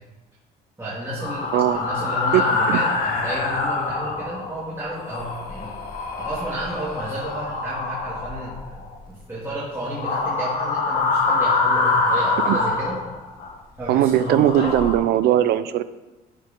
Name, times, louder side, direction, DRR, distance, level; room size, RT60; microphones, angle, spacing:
voice 1, 0.8-5.7 6.1-13.0 13.8-14.7, right 1 dB, 15° right, -9 dB, 2.3 m, -32 dB
sound 1, 1.2-4.6 5.0-9.0 9.9-13.5 14.0-15.0, left 3 dB, 65° left, 1.2 m, -25 dB
voice 2, 13.9-15.8, right 12 dB, 70° right, 14 dB, 0.5 m, -19 dB
11.0 x 4.6 x 3.7 m, 1.1 s
cardioid pair, 110°, 17 cm